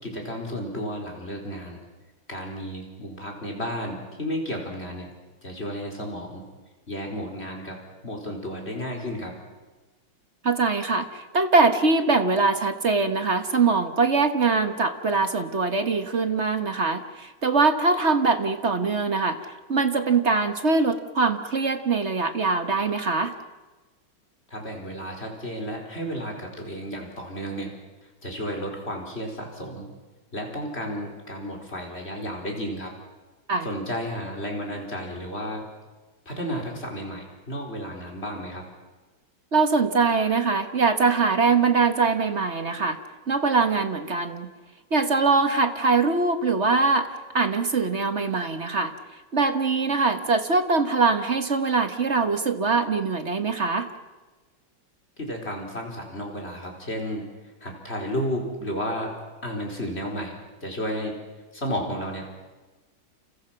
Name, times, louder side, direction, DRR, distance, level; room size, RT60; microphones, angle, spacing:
voice 1, 0.0-1.8 2.3-5.1 5.4-6.4 6.9-9.3 24.5-27.7 28.2-29.9 30.3-32.9 33.6-35.7 36.2-38.6 55.2-57.2 57.6-59.1 59.4-61.2 61.5-62.2, equal, 30° left, 1 dB, 4.8 m, -32 dB
voice 2, 10.4-23.4 33.5-33.7 39.5-43.0 43.3-44.5 44.9-53.9, right 4 dB, 35° right, 8 dB, 1.4 m, -23 dB
29.5 x 28.5 x 5.9 m, 1.2 s
omnidirectional pair, 2.3 m